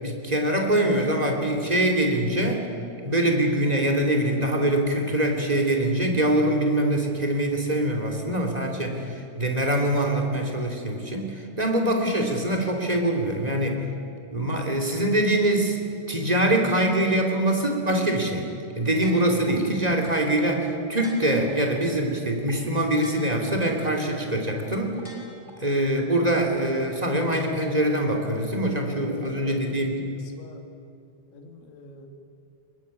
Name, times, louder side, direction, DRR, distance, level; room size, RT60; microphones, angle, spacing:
voice 1, 0.0-2.6 3.0-13.8 14.3-15.8 16.1-18.5 18.7-25.0 25.6-30.0, right 1 dB, 15° right, 2 dB, 1.6 m, -24 dB
sound 1, 19.0-19.5 20.0-20.1 20.5-20.6 21.0-21.5 22.0-22.1 22.5-22.6 23.0-23.5 24.0-24.1 24.5-24.6 25.0-25.5 26.0-26.1, left 1 dB, 15° left, 3.9 m, -45 dB
voice 2, 29.0-30.1 30.3-30.6 31.3-32.1, left 3 dB, 75° left, 5 dB, 4.5 m, -43 dB
22.5 x 21.0 x 9.6 m, 2.6 s
omnidirectional pair, 5.4 m